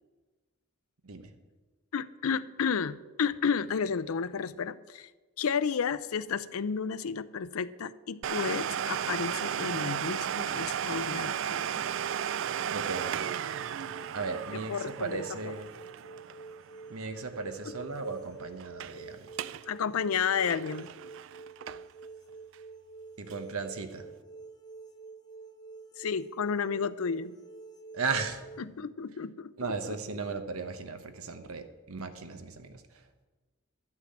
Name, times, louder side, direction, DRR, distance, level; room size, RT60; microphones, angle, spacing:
voice 1, 1.9-5.1 5.4-11.8 14.3-15.2 19.7-20.9 26.0-27.4 28.6-29.5, left 6 dB, 80° left, 16 dB, 0.5 m, -32 dB
Domestic sounds home sounds, 8.2-17.7 17.9-18.0 18.6-19.0 19.3-19.6 20.0-22.0 22.5-22.6 23.3-23.4, right 9 dB, 60° right, 0.3 m, -34 dB
sound 1, 12.7-28.6, right 4 dB, 20° left, 0.7 m, -48 dB
voice 2, 12.7-13.2 14.1-15.7 16.9-19.3 23.2-24.1 27.9-28.4 29.6-32.8, right 4 dB, 85° right, 8 dB, 1.1 m, -36 dB
12.0 x 6.1 x 8.7 m, 1.3 s
head